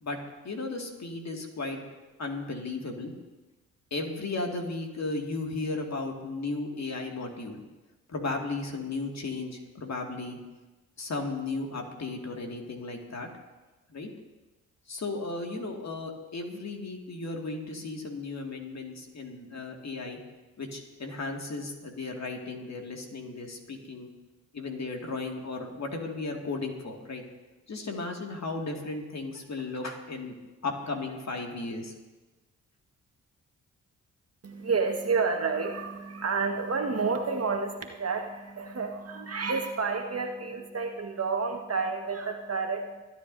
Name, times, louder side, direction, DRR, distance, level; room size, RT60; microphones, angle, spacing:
voice 1, 0.4-1.8 2.2-3.1 3.9-7.6 8.1-10.4 11.0-13.3 13.9-14.1 14.9-20.2 20.6-24.1 24.5-27.2 27.7-30.4 30.6-31.9, left 3 dB, 45° left, 2 dB, 2.3 m, -35 dB
voice 2, 34.4-43.0, right 4 dB, 40° right, 3 dB, 1.6 m, -30 dB
23.5 x 9.5 x 2.7 m, 1.2 s
hypercardioid pair, 40°, 37 cm